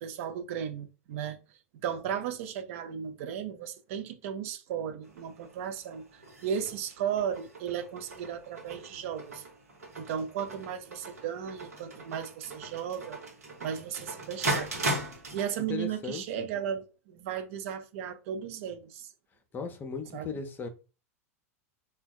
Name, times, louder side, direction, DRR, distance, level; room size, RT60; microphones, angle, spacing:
voice 1, 0.0-1.4 1.8-9.4 10.0-13.2 13.6-14.7 15.3-19.1 20.1-20.3, right 8 dB, 60° right, 0.5 m, -35 dB
sound 1, 5.0-15.5, right 2 dB, 85° right, 0.9 m, -38 dB
voice 2, 15.7-16.5 19.5-20.7, left 5 dB, 25° left, 0.6 m, -37 dB
3.3 x 2.2 x 2.3 m
hypercardioid pair, 90°, 8 cm